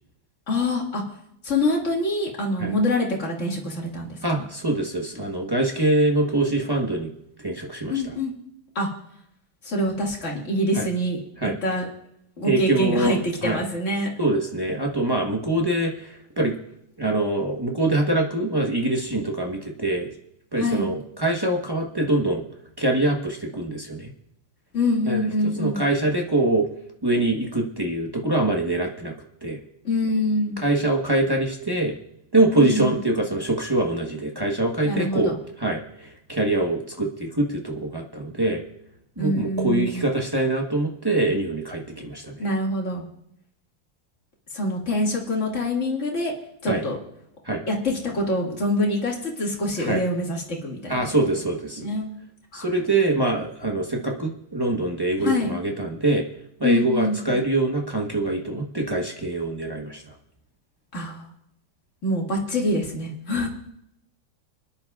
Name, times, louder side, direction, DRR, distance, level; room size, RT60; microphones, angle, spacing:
voice 1, 0.5-1.0 1.4-4.2 7.9-8.3 8.8-8.9 9.6-11.2 11.6-11.9 12.4-14.1 20.6-20.9 24.7-25.8 29.8-30.6 32.5-32.9 34.8-35.4 39.2-40.0 42.4-43.1 44.5-46.3 46.6-47.0 47.7-51.1 51.8-52.1 52.5-52.7 55.2-55.5 56.6-57.3 60.9-61.3 62.0-63.5, left 1 dB, 35° left, -2 dB, 2.3 m, -25 dB
voice 2, 4.2-7.1 7.4-7.9 10.7-10.8 11.4-11.6 12.4-13.6 14.2-16.6 17.0-20.1 20.5-22.4 22.8-24.1 25.1-25.2 25.6-26.7 27.0-29.1 29.4-29.6 30.6-31.9 32.3-38.6 39.2-42.4 46.7-46.8 47.4-47.6 49.8-50.0 50.9-52.0 52.5-56.2 56.6-60.0, right 2 dB, 20° right, 0 dB, 0.6 m, -24 dB
24.5 x 10.5 x 2.4 m, 0.77 s
omnidirectional pair, 2.2 m